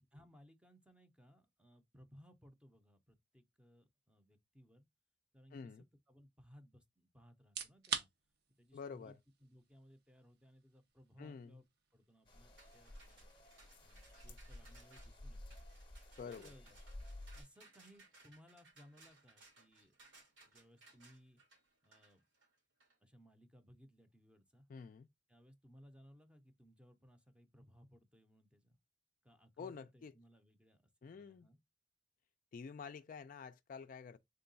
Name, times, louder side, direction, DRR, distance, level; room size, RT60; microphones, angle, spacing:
voice 1, 0.1-4.9 5.3-5.6 6.1-8.1 8.6-9.1 9.4-11.7 11.9-13.4 13.8-15.6 16.2-16.8 17.3-19.9 20.5-21.4 21.8-22.2 23.0-24.7 25.3-28.8 29.2-30.8 31.1-31.6, equal, 5° right, 0.6 m, -63 dB
voice 2, 5.5-5.8 8.7-9.2 11.2-11.6 16.2-16.5 24.7-25.1 29.6-30.1 31.0-31.5 32.5-34.2, left 5 dB, 50° left, 0.3 m, -49 dB
sound 1, 7.4-22.2, right 7 dB, 60° right, 0.6 m, -52 dB
sound 2, 12.3-17.4, left 1 dB, 25° left, 0.8 m, -53 dB
sound 3, 12.6-22.9, right 3 dB, 90° right, 1.8 m, -64 dB
3.7 x 2.2 x 3.9 m
head